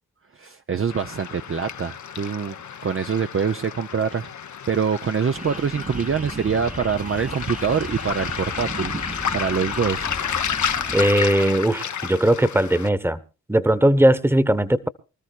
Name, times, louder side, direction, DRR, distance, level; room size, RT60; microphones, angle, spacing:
voice 1, 0.4-2.5 2.8-4.3 4.7-8.9 9.3-10.1, right 6 dB, 35° right, 0.7 m, -24 dB
Waves surf, 0.9-12.9, left 8 dB, 55° left, 0.9 m, -31 dB
sound 1, 5.3-11.1, right 3 dB, 20° right, 1.0 m, -37 dB
sound 2, 5.9-11.0, left 3 dB, 15° left, 1.0 m, -40 dB
voice 2, 10.9-13.2 13.5-14.9, right 1 dB, 5° right, 1.3 m, -19 dB
25.0 x 13.5 x 2.5 m
supercardioid pair, 45°, 35 cm